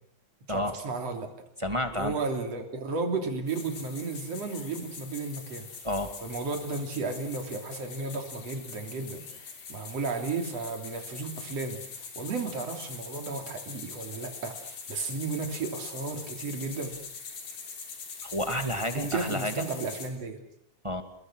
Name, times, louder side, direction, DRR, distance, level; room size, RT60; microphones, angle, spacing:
voice 1, 0.5-1.3 1.9-5.7 6.2-9.2 9.7-17.0 18.9-20.4, right 4 dB, 55° right, 4 dB, 4.2 m, -33 dB
voice 2, 1.6-2.1 5.8-6.1 18.2-19.5 20.8-21.0, left 1 dB, 15° right, 7 dB, 1.3 m, -30 dB
sound 1, 3.5-20.1, left 5 dB, 80° left, 5.0 m, -43 dB
30.0 x 21.5 x 6.3 m, 0.66 s
omnidirectional pair, 3.5 m